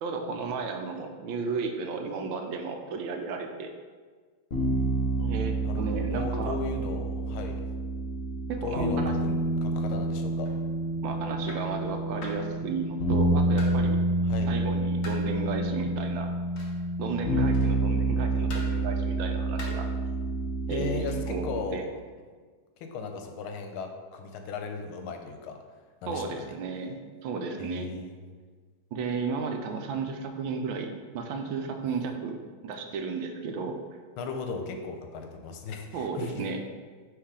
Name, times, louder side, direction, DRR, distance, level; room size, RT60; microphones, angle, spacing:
voice 1, 0.0-3.7 5.2-6.6 8.5-9.1 11.0-14.0 14.5-16.3 17.0-19.9 20.7-21.8 26.1-27.9 28.9-33.8 35.9-36.6, right 4 dB, 75° right, 5 dB, 1.3 m, -34 dB
sound 1, 4.5-21.5, right 2 dB, 35° left, 1.4 m, -28 dB
voice 2, 5.6-7.6 8.6-10.5 14.3-14.5 20.7-21.9 22.8-25.6 26.0-26.5 27.6-28.1 34.2-36.4, left 4 dB, 85° left, 5 dB, 1.5 m, -36 dB
sound 2, 10.4-10.6 11.5-11.7 12.2-12.5 13.6-13.8 15.0-15.3 16.6-16.8 17.5-17.8 18.5-18.8 19.6-19.9 21.1-21.3, left 2 dB, 55° left, 1.0 m, -43 dB
9.2 x 3.1 x 3.7 m, 1.5 s
omnidirectional pair, 2.2 m